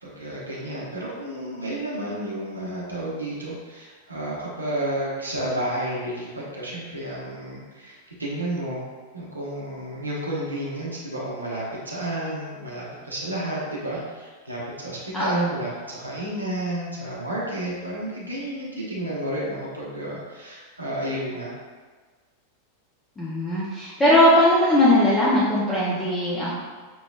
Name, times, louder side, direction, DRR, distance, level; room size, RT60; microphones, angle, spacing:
voice 1, 0.0-8.8 9.1-21.5, right 1 dB, 80° right, -6 dB, 0.9 m, -31 dB
voice 2, 15.1-15.5 23.2-26.5, left 1 dB, 15° left, -9 dB, 0.8 m, -19 dB
6.1 x 3.0 x 2.3 m, 1.5 s
figure-of-eight pair, 90°, 0 cm